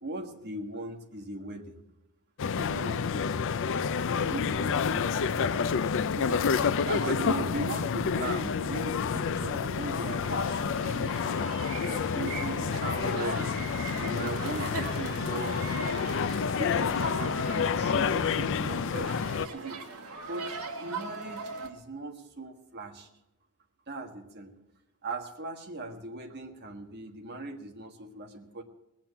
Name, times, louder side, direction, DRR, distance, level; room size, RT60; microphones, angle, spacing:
voice 1, 0.0-1.7 2.6-3.4 4.1-11.5 11.8-13.5 14.0-16.0 16.4-19.8 20.2-23.1 23.9-24.5 25.0-28.6, right 2 dB, 50° right, 3 dB, 1.6 m, -39 dB
sound 1, 2.4-19.5, left 6 dB, 60° left, 0.5 m, -29 dB
sound 2, 10.2-21.7, right 3 dB, 75° right, 1.7 m, -40 dB
20.0 x 7.5 x 6.9 m, 0.94 s
head